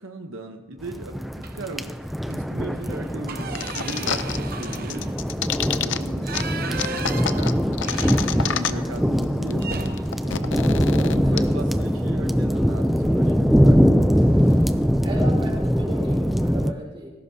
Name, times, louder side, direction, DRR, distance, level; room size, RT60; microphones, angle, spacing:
voice 1, 0.0-1.9 2.3-5.2 5.8-7.8 8.3-9.8 10.2-14.1, right 2 dB, 85° right, 4 dB, 1.0 m, -37 dB
sound 1, 0.8-16.7, equal, ahead, 0.4 m, -22 dB
sound 2, 1.4-1.8 2.2-2.3 2.7-8.8 9.1-9.2 9.6-11.7 13.1-13.3 13.7-13.9 14.1-14.8, right 4 dB, 45° right, 0.9 m, -37 dB
sound 3, 3.5-4.4 4.6-6.0 6.3-6.4 6.8-9.0 9.2-9.3 9.5-11.4, left 8 dB, 65° left, 0.6 m, -28 dB
voice 2, 11.2-11.9 15.0-17.1, equal, 25° right, -3 dB, 4.3 m, -35 dB
19.5 x 16.5 x 2.8 m, 1.3 s
head